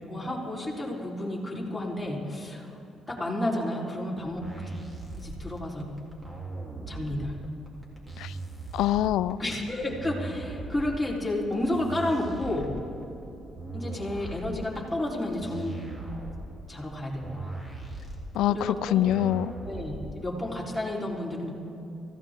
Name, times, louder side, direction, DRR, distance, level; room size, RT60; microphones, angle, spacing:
voice 1, 0.1-2.8 3.1-4.5 5.2-5.9 6.9-7.4 9.4-12.7 13.7-15.8 16.7-17.6 18.5-19.1 19.6-21.5, left 1 dB, 10° left, -5 dB, 4.1 m, -31 dB
sound 1, 4.2-20.2, right 3 dB, 20° right, 3.4 m, -39 dB
voice 2, 8.7-9.4 18.3-19.5, left 13 dB, 85° left, 18 dB, 0.3 m, -25 dB
24.0 x 15.5 x 3.8 m, 2.8 s
cardioid pair, 90°, 0 cm